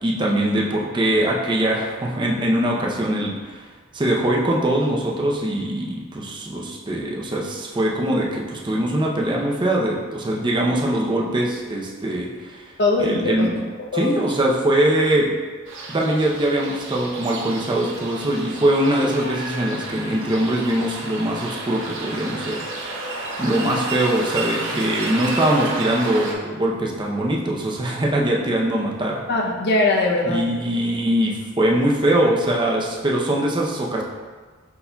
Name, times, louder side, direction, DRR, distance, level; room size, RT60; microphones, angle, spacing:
voice 1, 0.0-3.6 3.9-12.6 13.0-13.5 13.9-15.3 15.9-22.6 23.4-29.2 30.2-34.0, right 1 dB, 20° right, -2 dB, 0.6 m, -22 dB
voice 2, 12.8-14.3 29.3-30.5, left 2 dB, 50° left, 0 dB, 0.6 m, -22 dB
sound 1, 15.7-26.3, right 2 dB, 65° right, 0.7 m, -32 dB
5.3 x 4.4 x 2.3 m, 1.4 s
head